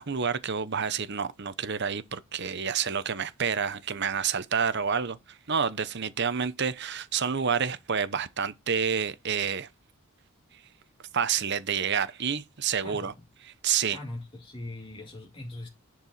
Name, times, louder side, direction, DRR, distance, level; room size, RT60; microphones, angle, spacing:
voice 1, 0.0-9.7 11.1-13.1 13.6-14.0, right 7 dB, 50° right, 0.8 m, -29 dB
voice 2, 13.9-15.7, left 1 dB, 25° left, 2.2 m, -40 dB
11.0 x 4.7 x 4.2 m
head